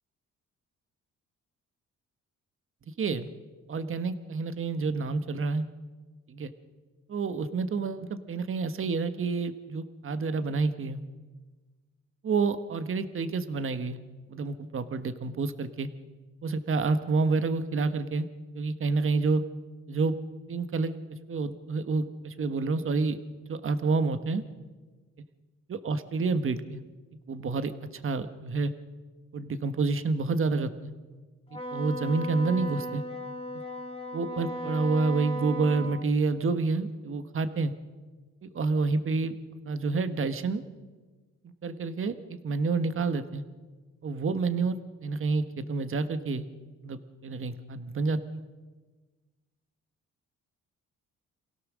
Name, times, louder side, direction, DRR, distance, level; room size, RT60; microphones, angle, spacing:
voice 1, 3.0-3.3 3.7-5.7 6.3-6.5 7.1-11.0 12.2-14.0 14.3-15.9 16.4-18.3 18.5-19.4 19.9-20.1 20.5-20.9 21.3-23.2 23.5-24.4 25.7-26.8 27.3-28.7 29.3-30.9 31.7-33.0 34.1-37.7 38.4-39.4 39.6-40.6 41.6-43.4 44.0-46.4 46.8-48.4, right 4 dB, 45° right, 10 dB, 1.4 m, -28 dB
Wind instrument woodwind instrument, 31.5-36.0, equal, 20° left, 2.3 m, -36 dB
27.5 x 17.0 x 6.3 m, 1.3 s
cardioid pair, 90°, 30 cm